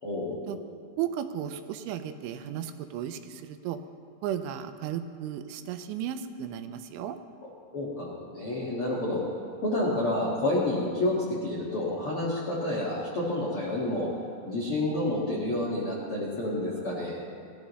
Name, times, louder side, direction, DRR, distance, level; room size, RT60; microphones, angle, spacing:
voice 1, 0.0-0.6 7.7-9.2 9.6-14.1 14.4-17.2, left 1 dB, 65° left, -6 dB, 1.4 m, -29 dB
voice 2, 1.0-3.8 4.2-7.2, right 10 dB, 85° right, 9 dB, 3.0 m, -34 dB
19.5 x 13.5 x 3.1 m, 2.3 s
omnidirectional pair, 5.5 m